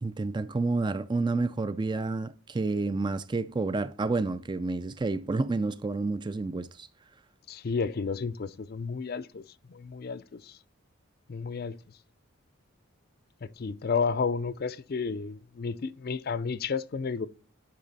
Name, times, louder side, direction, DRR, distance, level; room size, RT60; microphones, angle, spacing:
voice 1, 0.0-6.9, right 3 dB, 20° right, 0.3 m, -29 dB
voice 2, 7.5-9.4 9.7-10.6 11.3-11.8 13.4-17.3, left 5 dB, 45° left, 0.4 m, -32 dB
10.5 x 4.8 x 4.0 m
head